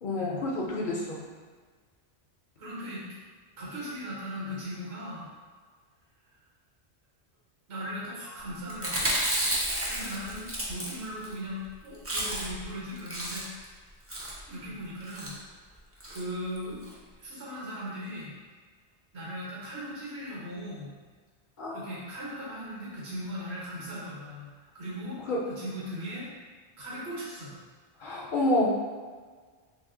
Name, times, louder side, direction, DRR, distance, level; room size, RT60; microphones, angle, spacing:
voice 1, 0.0-1.3 21.6-21.8 25.3-25.5 28.0-28.7, left 1 dB, 55° left, -3 dB, 0.7 m, -28 dB
voice 2, 2.6-3.1 3.6-5.3 7.7-9.1 9.8-13.5 14.5-15.3 16.1-16.8 17.2-18.3 19.1-20.9 21.7-24.5 24.7-26.3 26.8-27.6, equal, 75° right, -6 dB, 1.2 m, -38 dB
Chewing mastication, 8.7-11.3 11.6-11.7 11.9-12.6 13.0-13.6 14.1-14.4 15.0-15.3 16.0-16.2 16.6-16.7 16.8-16.9, right 1 dB, 20° right, 0.4 m, -31 dB
2.8 x 2.7 x 3.7 m, 1.6 s
omnidirectional pair, 1.1 m